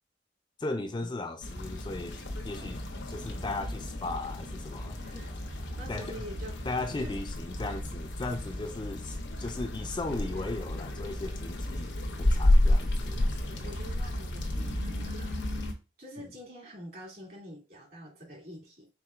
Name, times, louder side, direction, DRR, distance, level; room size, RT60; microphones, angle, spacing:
voice 1, 0.6-2.8 3.1-5.0 5.9-6.2 6.6-11.9 12.2-13.2, left 2 dB, 25° left, 0.4 m, -36 dB
sound 1, 1.4-15.7, left 1 dB, 85° left, 0.8 m, -31 dB
voice 2, 5.0-6.7 7.0-7.2 13.4-15.4 16.0-18.9, equal, 60° right, 2.5 m, -46 dB
4.5 x 3.8 x 2.4 m
head